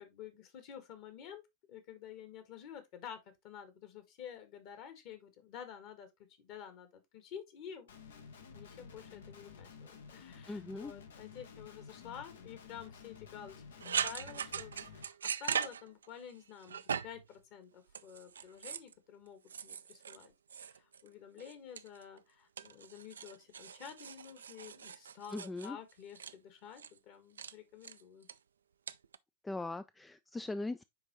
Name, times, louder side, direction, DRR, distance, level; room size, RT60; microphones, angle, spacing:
voice 1, 0.0-1.4 1.7-6.1 6.4-8.3 8.5-20.3 20.6-28.3, left 8 dB, 45° left, 1.7 m, -50 dB
Guitar, 7.9-15.0, left 5 dB, 65° left, 0.9 m, -53 dB
voice 2, 10.5-10.9 25.3-25.8 29.4-30.8, left 2 dB, 10° left, 0.3 m, -40 dB
sound 1, 13.8-16.3 16.6-17.3 17.9-18.9 19.5-21.1 21.4-22.2 22.6-26.3 26.8-27.0 27.4-27.5 27.8-28.3 28.9-29.2, right 7 dB, 70° right, 0.4 m, -40 dB
9.7 x 3.6 x 3.0 m
figure-of-eight pair, 90°, 0 cm